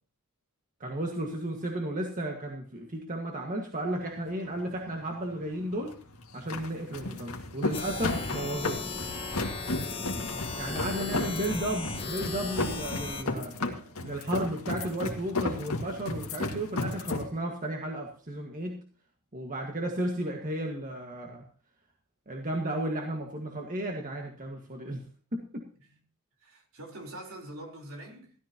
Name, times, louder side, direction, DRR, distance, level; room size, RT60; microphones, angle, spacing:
voice 1, 0.8-5.9 6.3-8.8 10.5-18.8 19.3-21.5 22.3-25.0 25.3-25.6, right 1 dB, 40° right, 1.8 m, -34 dB
sound 1, 3.9-17.3, left 2 dB, 80° left, 2.1 m, -34 dB
sound 2, 7.7-13.2, left 3 dB, 25° left, 1.5 m, -36 dB
voice 2, 10.0-10.7 10.9-11.6 12.0-12.4 25.9-26.0 26.4-28.3, right 1 dB, 65° right, 4.1 m, -46 dB
17.0 x 13.0 x 3.0 m
head